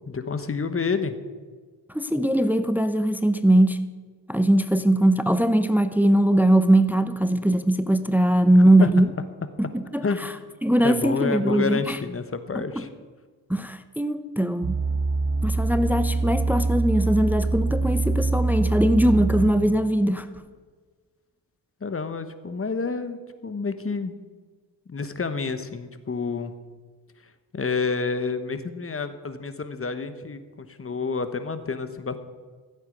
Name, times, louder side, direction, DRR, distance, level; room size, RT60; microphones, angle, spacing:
voice 1, 0.1-1.2 8.8-8.9 10.0-10.3 10.8-12.9 21.8-24.2 24.9-26.6 27.2-32.2, left 4 dB, 30° left, 11 dB, 1.1 m, -29 dB
voice 2, 1.9-3.8 4.3-9.1 9.6-9.7 9.9-10.0 10.6-12.0 13.5-14.8 15.4-20.3, right 1 dB, 5° right, 11 dB, 0.7 m, -20 dB
sound 1, 14.6-19.7 20.4-20.5, right 3 dB, 35° right, 1.1 m, -24 dB
14.5 x 8.2 x 5.3 m, 1.5 s
cardioid pair, 60°, 41 cm